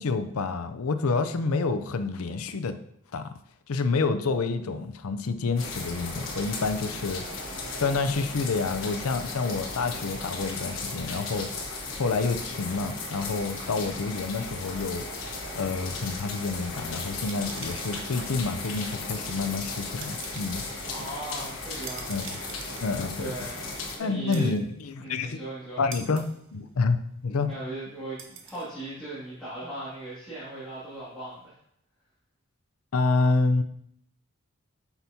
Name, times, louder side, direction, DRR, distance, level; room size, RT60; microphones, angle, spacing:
voice 1, 0.0-2.8 3.1-3.4 3.7-7.2 7.8-11.5 11.9-15.0 15.5-20.6 22.1-22.4 22.8-23.4 24.0-25.4 25.8-27.5 32.9-33.6, left 4 dB, 90° left, 10 dB, 0.5 m, -28 dB
sound 1, 5.6-24.0, left 3 dB, 65° left, 1.3 m, -36 dB
sound 2, 17.2-31.5, right 6 dB, 60° right, 0.8 m, -48 dB
voice 2, 20.9-22.3 23.2-24.5 25.0-25.8 27.4-31.5, right 2 dB, ahead, -15 dB, 2.2 m, -38 dB
7.9 x 5.9 x 2.8 m, 0.72 s
head